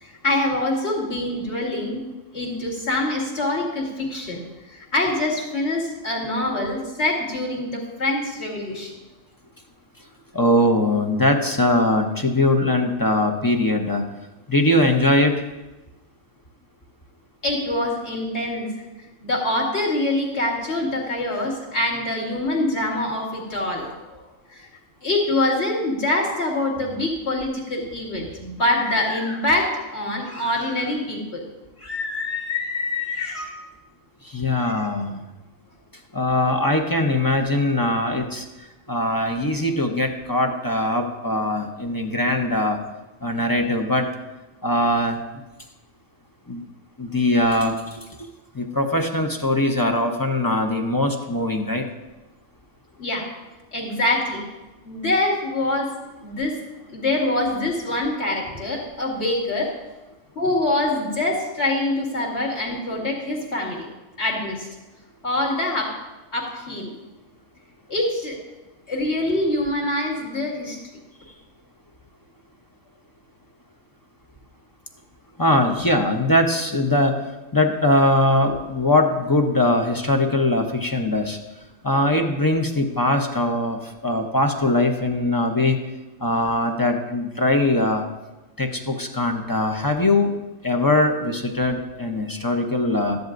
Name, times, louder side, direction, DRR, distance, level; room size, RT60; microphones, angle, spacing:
voice 1, 0.0-2.0 2.3-4.4 4.7-8.9 17.4-18.7 19.2-24.2 24.5-24.7 25.0-31.4 31.8-33.6 34.6-34.9 53.0-53.3 53.7-54.4 54.8-55.9 56.2-56.6 56.9-59.7 60.4-63.9 64.2-64.7 65.2-66.0 66.3-66.9 67.9-68.4 68.9-70.8, left 2 dB, 50° left, -5 dB, 2.7 m, -25 dB
voice 2, 10.3-14.0 14.5-15.4 34.2-35.2 36.1-38.5 38.9-42.8 43.2-44.1 44.6-45.2 46.5-46.6 47.0-48.0 48.5-51.8 75.4-77.2 77.5-81.4 81.8-85.8 86.2-88.0 88.6-90.3 90.6-93.2, left 1 dB, 20° left, 3 dB, 0.6 m, -21 dB
14.5 x 10.5 x 2.6 m, 1.1 s
omnidirectional pair, 1.4 m